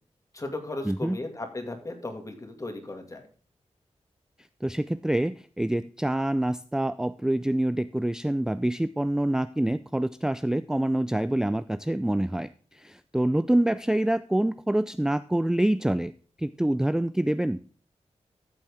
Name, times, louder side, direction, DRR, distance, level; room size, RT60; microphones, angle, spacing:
voice 1, 0.3-3.3, left 2 dB, 30° left, 5 dB, 2.3 m, -36 dB
voice 2, 0.8-1.2 4.6-16.1 16.4-17.6, right 1 dB, 5° right, 13 dB, 0.4 m, -26 dB
13.5 x 7.5 x 3.7 m, 0.41 s
wide cardioid pair, 120°, 11 cm